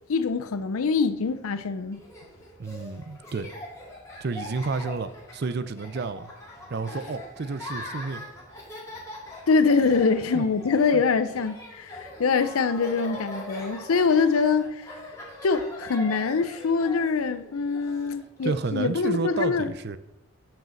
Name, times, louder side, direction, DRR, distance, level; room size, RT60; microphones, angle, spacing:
voice 1, 0.1-2.0 9.5-14.8 15.4-19.7, left 4 dB, 85° left, 0.5 m, -24 dB
Laughter, 1.9-18.7, left 1 dB, 15° left, 1.9 m, -42 dB
voice 2, 2.6-3.5 4.2-6.3 6.7-8.2 10.3-10.4 18.4-20.0, right 4 dB, 50° right, 0.4 m, -30 dB
9.2 x 4.9 x 6.4 m
head